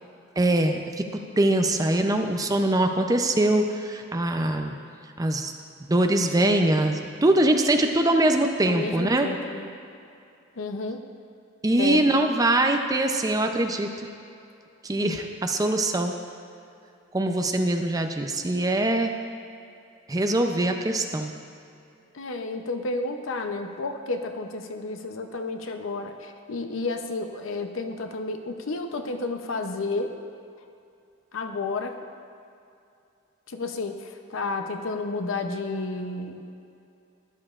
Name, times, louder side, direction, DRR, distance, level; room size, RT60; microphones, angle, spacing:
voice 1, 0.4-4.8 5.2-5.5 5.9-9.3 11.6-13.9 14.8-16.1 17.1-19.1 20.1-21.3, right 1 dB, 20° right, 5 dB, 0.5 m, -23 dB
voice 2, 8.7-9.7 10.6-11.0 11.8-12.1 22.1-30.1 31.3-32.0 33.5-36.5, left 3 dB, 75° left, 6 dB, 0.7 m, -31 dB
13.5 x 11.0 x 2.5 m, 2.6 s
head